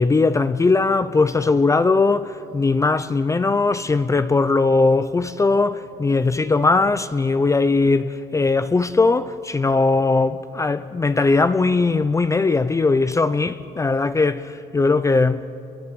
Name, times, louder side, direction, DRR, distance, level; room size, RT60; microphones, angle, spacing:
voice 1, 0.0-15.5, left 3 dB, 20° left, 0.6 m, -19 dB
29.5 x 22.5 x 7.8 m
cardioid pair, 110°, 17 cm